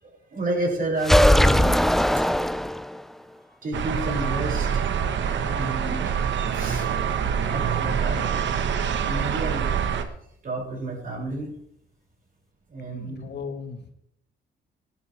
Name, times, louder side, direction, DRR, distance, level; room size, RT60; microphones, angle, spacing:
voice 1, 0.0-2.4 3.6-4.8 5.2-6.1 6.5-8.8 9.1-10.1 10.4-11.5 12.7-13.2, right 2 dB, 45° right, -2 dB, 6.8 m, -31 dB
sound 1, 1.0-3.1, equal, ahead, 0.4 m, -19 dB
sound 2, 3.7-10.0, right 7 dB, 70° right, 1.5 m, -25 dB
voice 2, 12.9-13.9, left 5 dB, 60° left, 7 dB, 1.7 m, -36 dB
18.0 x 11.5 x 3.5 m, 0.69 s
cardioid pair, 90°, 20 cm